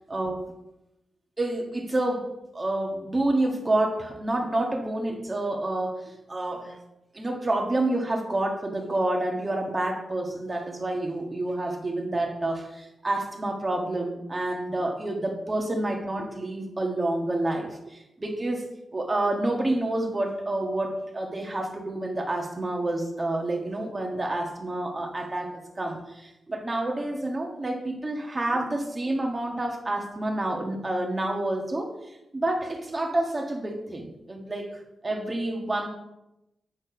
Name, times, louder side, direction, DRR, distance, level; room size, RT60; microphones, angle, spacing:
voice 1, 0.1-0.4 1.4-6.8 7.1-31.9 32.3-35.9, right 1 dB, 25° right, 2 dB, 1.5 m, -28 dB
8.6 x 4.5 x 5.8 m, 0.90 s
cardioid pair, 100°, 0 cm